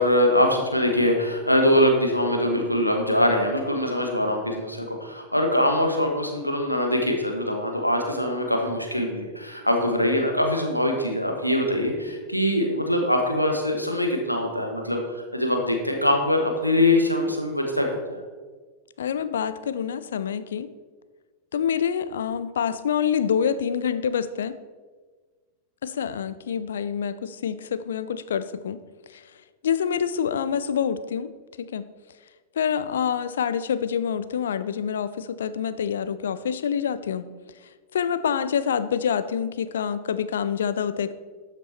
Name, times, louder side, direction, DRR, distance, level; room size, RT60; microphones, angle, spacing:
voice 1, 0.0-18.2, left 1 dB, 90° left, 2 dB, 1.3 m, -23 dB
voice 2, 19.0-20.7 21.5-24.5 25.8-28.8 29.1-29.2 29.6-31.3 31.7-31.9 32.6-37.3 37.9-41.1, left 8 dB, 65° left, 14 dB, 0.5 m, -26 dB
12.5 x 6.0 x 4.4 m, 1.4 s
figure-of-eight pair, 90°, 0 cm